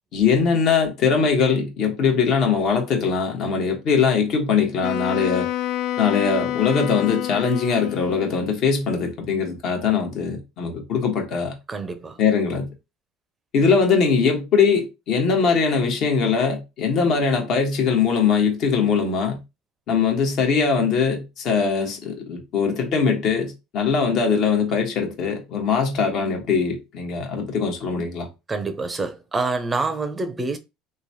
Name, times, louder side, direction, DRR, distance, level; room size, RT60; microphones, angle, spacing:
voice 1, 0.1-5.5 6.0-11.5 12.2-12.7 13.5-19.4 19.9-28.3, left 5 dB, 55° left, 1.0 m, -21 dB
Wind instrument woodwind instrument, 4.8-8.4, left 12 dB, 75° left, 0.4 m, -27 dB
voice 2, 11.7-12.2 28.5-30.6, right 3 dB, 20° right, 0.5 m, -26 dB
3.0 x 2.2 x 2.7 m
hypercardioid pair, 85°, 0 cm